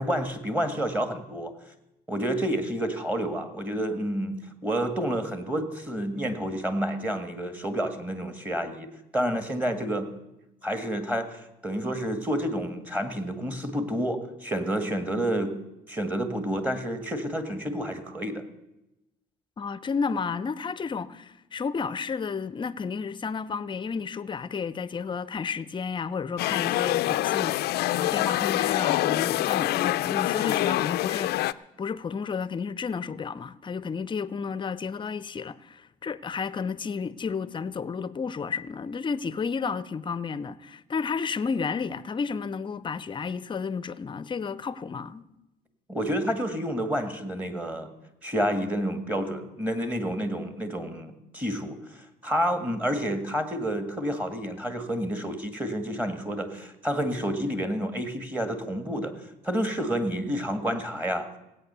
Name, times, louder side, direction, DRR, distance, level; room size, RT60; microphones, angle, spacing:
voice 1, 0.0-1.5 2.1-8.9 9.1-10.1 10.6-15.5 15.9-18.4 45.9-47.9 48.2-59.1 59.4-61.3, equal, 10° right, 1.7 m, -29 dB
voice 2, 19.6-45.2, left 5 dB, 30° left, 0.6 m, -32 dB
sound 1, 26.4-31.5, left 16 dB, 70° left, 0.4 m, -25 dB
17.0 x 8.7 x 6.8 m
cardioid pair, 110°, 17 cm